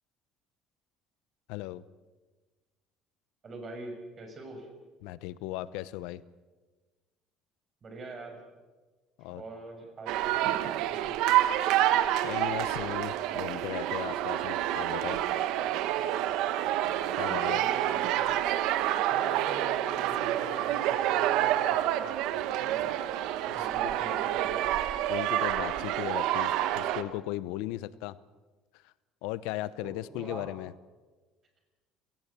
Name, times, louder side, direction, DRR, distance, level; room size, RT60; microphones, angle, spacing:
voice 1, 1.5-1.8 5.0-6.2 9.2-9.4 11.7-11.8 12.2-15.2 17.2-17.6 23.5-23.6 25.1-28.2 28.8-28.9 29.2-30.7, left 16 dB, 85° left, 17 dB, 0.8 m, -37 dB
voice 2, 3.4-4.7 7.8-8.4 9.4-11.4 17.5-18.5 19.1-23.0 23.5-24.7 29.8-30.5, right 2 dB, 30° right, 5 dB, 6.0 m, -44 dB
sound 1, 10.1-27.0, right 12 dB, 75° right, 1.2 m, -28 dB
29.5 x 18.0 x 6.9 m, 1.3 s
cardioid pair, 140°, 0 cm